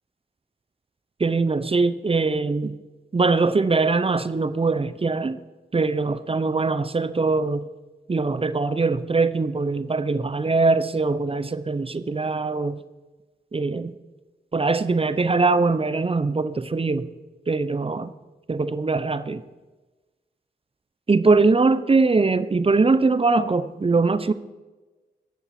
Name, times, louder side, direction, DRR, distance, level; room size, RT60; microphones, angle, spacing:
voice 1, 1.2-2.8 3.1-5.4 5.7-7.7 8.1-12.8 13.5-13.9 14.5-17.1 17.5-18.1 18.5-19.4 21.1-24.3, right 3 dB, 30° right, 14 dB, 0.7 m, -22 dB
14.0 x 7.1 x 5.9 m, 1.2 s
cardioid pair, 60°, 18 cm